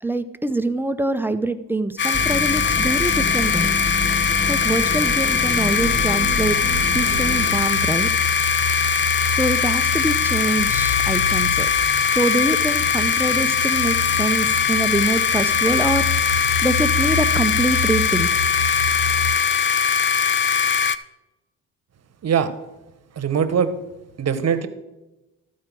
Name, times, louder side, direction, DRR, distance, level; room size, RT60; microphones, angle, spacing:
voice 1, 0.0-3.7 4.5-6.6 6.9-8.1 9.3-11.7 12.1-16.1 16.6-18.3, right 2 dB, 5° right, 10 dB, 0.7 m, -24 dB
sound 1, 2.0-21.0, left 6 dB, 35° left, 0.5 m, -21 dB
sound 2, 2.1-7.6, left 1 dB, 15° left, 1.4 m, -28 dB
sound 3, 5.7-19.3, left 1 dB, 70° left, 1.3 m, -30 dB
voice 2, 23.2-23.7 24.2-24.7, right 7 dB, 50° right, 11 dB, 1.1 m, -21 dB
13.0 x 4.7 x 6.1 m, 0.99 s
supercardioid pair, 70°, 33 cm